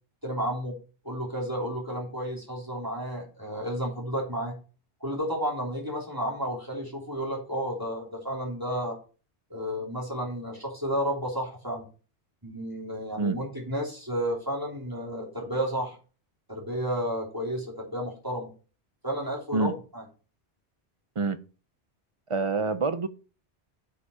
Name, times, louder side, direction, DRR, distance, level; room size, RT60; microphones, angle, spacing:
voice 1, 0.2-0.8 1.0-4.6 5.0-9.0 9.5-11.9 12.4-15.9 16.5-18.5 19.0-20.0, equal, 20° right, 3.0 m, -32 dB
voice 2, 22.3-23.1, right 4 dB, 40° right, 0.5 m, -26 dB
8.2 x 5.2 x 5.6 m
omnidirectional pair, 1.1 m